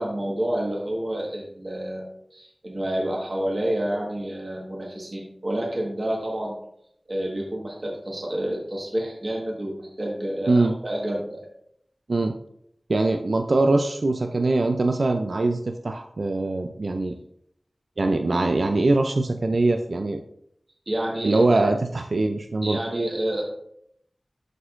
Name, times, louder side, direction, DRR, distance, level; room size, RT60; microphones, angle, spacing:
voice 1, 0.0-2.1 2.3-6.6 7.1-11.5 20.9-21.6 22.6-23.4, right 1 dB, 45° right, -2 dB, 1.4 m, -29 dB
voice 2, 12.9-17.2 18.0-20.2 21.2-22.8, right 2 dB, 70° right, 5 dB, 0.4 m, -22 dB
11.5 x 4.4 x 2.5 m, 0.73 s
wide cardioid pair, 65°, 0 cm